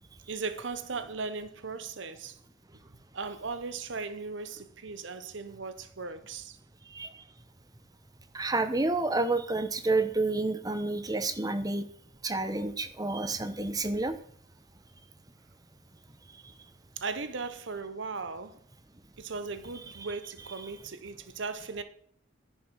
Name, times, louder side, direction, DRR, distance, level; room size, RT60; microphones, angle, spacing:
voice 1, 0.3-2.4 3.1-6.6 17.0-18.6 19.2-21.8, right 4 dB, 65° right, 0.8 m, -37 dB
voice 2, 6.9-7.2 8.3-11.9 12.2-14.1 16.4-16.5, right 2 dB, 20° right, 0.8 m, -29 dB
10.5 x 7.2 x 6.2 m
head